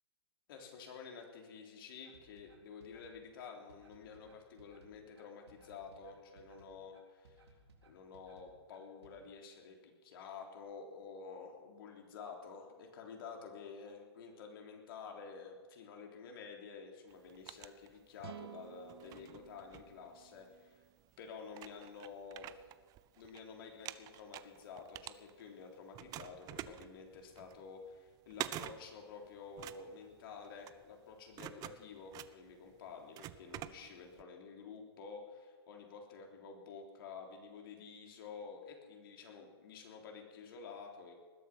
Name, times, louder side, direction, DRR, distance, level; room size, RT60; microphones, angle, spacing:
voice 1, 0.5-7.4 7.8-20.8 21.2-22.5 23.2-41.1, left 5 dB, 60° left, 2 dB, 3.5 m, -50 dB
sound 1, 2.0-9.1, right 4 dB, 85° right, 3.8 m, -63 dB
sound 2, 17.1-18.4 18.9-20.5 21.1-21.2 21.5-23.4 23.7-25.6 25.9-34.2, right 13 dB, 30° right, 0.6 m, -47 dB
sound 3, 18.2-21.5, right 11 dB, 65° right, 0.4 m, -54 dB
20.0 x 12.0 x 6.1 m, 1.5 s
hypercardioid pair, 125°, 14 cm